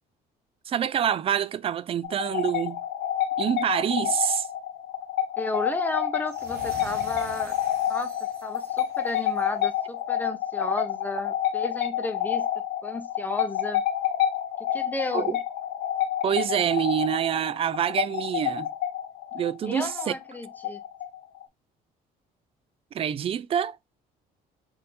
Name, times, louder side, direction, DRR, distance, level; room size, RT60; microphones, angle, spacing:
voice 1, 0.7-2.8 3.4-4.5 15.1-15.2 16.2-18.7 19.3-20.1 22.9-23.8, right 9 dB, 35° right, 0.4 m, -26 dB
sound 1, 2.0-21.4, left 11 dB, 85° left, 0.9 m, -29 dB
voice 2, 5.4-7.6 7.9-8.1 8.4-13.8 14.6-15.4 19.6-20.8, left 2 dB, 10° left, 0.7 m, -33 dB
sound 2, 6.3-9.6, right 5 dB, 70° right, 1.0 m, -46 dB
3.7 x 2.6 x 4.1 m
cardioid pair, 110°, 17 cm